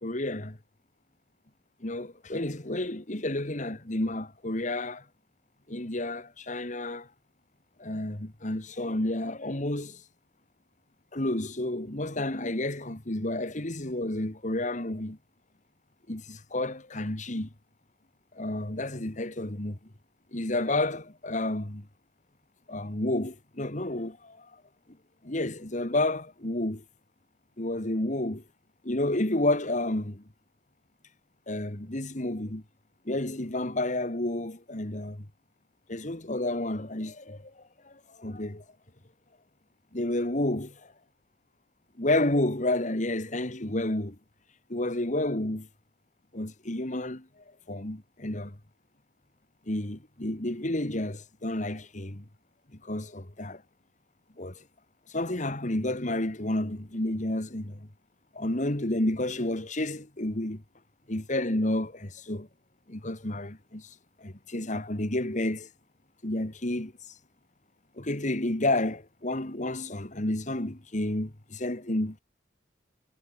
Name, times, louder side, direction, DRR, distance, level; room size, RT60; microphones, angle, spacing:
voice 1, 0.0-0.6 1.8-5.0 5.7-7.1 7.8-10.0 11.1-15.2 16.1-17.5 18.3-19.8 20.3-21.9 22.7-24.5 25.2-26.8 27.6-28.4 28.8-30.2 31.5-32.6 33.1-35.3 35.9-38.6 39.9-40.7 42.0-44.2 44.7-45.7 46.3-47.3 47.7-48.6 49.7-52.2 52.8-53.6 54.4-54.6 55.1-57.9 58.3-60.6 61.1-62.5 62.9-65.7 66.2-66.9 68.0-72.2, left 1 dB, 45° left, 2.2 m, -30 dB
head